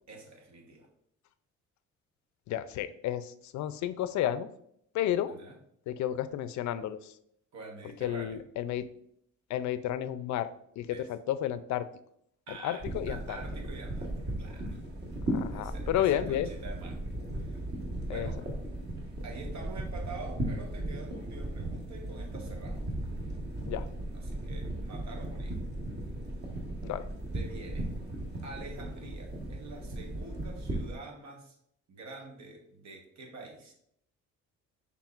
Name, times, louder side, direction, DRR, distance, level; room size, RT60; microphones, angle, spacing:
voice 1, 0.1-0.9 5.3-5.6 7.5-8.4 10.9-11.1 12.5-14.8 15.5-17.0 17.4-17.6 18.0-18.4 19.2-22.8 24.1-25.6 27.3-27.9 28.4-31.6 31.9-33.7, right 3 dB, 65° right, 2 dB, 1.2 m, -46 dB
voice 2, 2.5-4.5 4.9-5.3 5.9-7.2 8.0-8.9 9.5-11.9 12.5-13.4 15.3-16.5 18.1-18.3 23.7-23.9 26.8-27.1, left 11 dB, 70° left, 13 dB, 0.4 m, -32 dB
sound 1, 12.8-30.9, right 1 dB, 35° right, 1.2 m, -37 dB
5.9 x 3.5 x 2.4 m, 0.71 s
cardioid pair, 90°, 30 cm